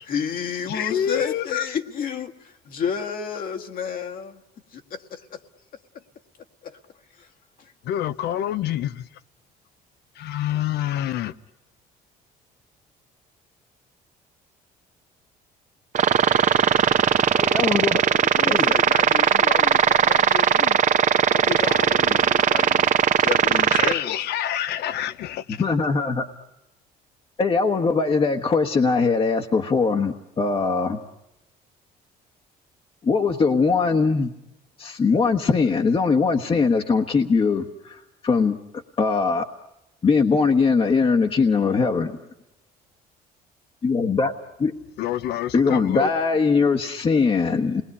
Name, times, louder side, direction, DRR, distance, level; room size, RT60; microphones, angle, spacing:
voice 1, 0.0-4.4 4.7-5.4 6.6-6.8 7.2-7.3 7.6-7.7 18.1-20.8 21.3-24.1, left 6 dB, 55° left, 1.8 m, -31 dB
voice 2, 0.7-1.7 7.8-9.1 10.2-11.3 23.7-25.6 45.0-46.1, left 11 dB, 75° left, 0.9 m, -27 dB
sound 1, 15.9-23.9, right 8 dB, 45° right, 1.0 m, -19 dB
voice 3, 17.3-18.0 18.5-18.7 25.6-26.3 27.4-31.0 33.0-34.3 34.8-38.6 39.0-39.5 40.0-42.2 43.8-44.3 44.6-44.7 45.5-47.8, left 4 dB, 30° left, 1.3 m, -21 dB
28.0 x 20.5 x 9.8 m
cardioid pair, 110°, 17 cm